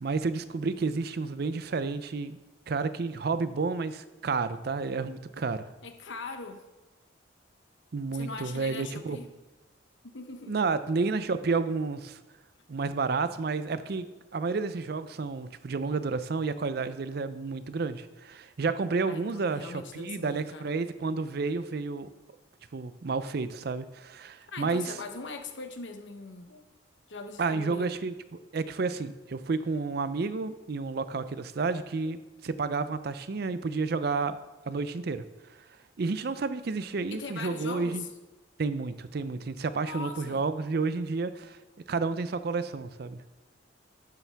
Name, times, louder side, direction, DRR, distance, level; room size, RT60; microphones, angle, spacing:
voice 1, 0.0-2.4 2.7-5.6 7.9-9.2 10.5-12.2 12.7-14.1 14.3-22.1 22.7-24.9 27.4-28.1 28.5-34.4 34.7-35.2 36.0-38.0 38.6-41.6 41.9-43.2, right 4 dB, 55° right, 13 dB, 0.4 m, -31 dB
voice 2, 5.8-6.6 8.1-9.2 10.0-10.5 19.1-20.7 24.5-26.6 27.1-27.9 37.1-38.1 39.8-40.4, left 3 dB, 70° left, 6 dB, 1.0 m, -41 dB
11.5 x 7.0 x 3.4 m, 1.1 s
head